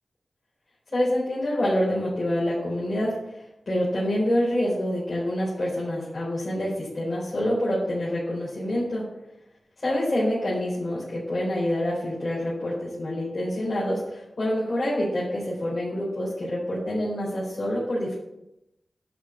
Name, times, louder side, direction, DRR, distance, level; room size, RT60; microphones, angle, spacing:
voice 1, 0.9-9.0 9.8-18.1, left 1 dB, 45° left, -7 dB, 4.2 m, -27 dB
11.0 x 4.7 x 8.1 m, 0.88 s
wide cardioid pair, 100°, 0 cm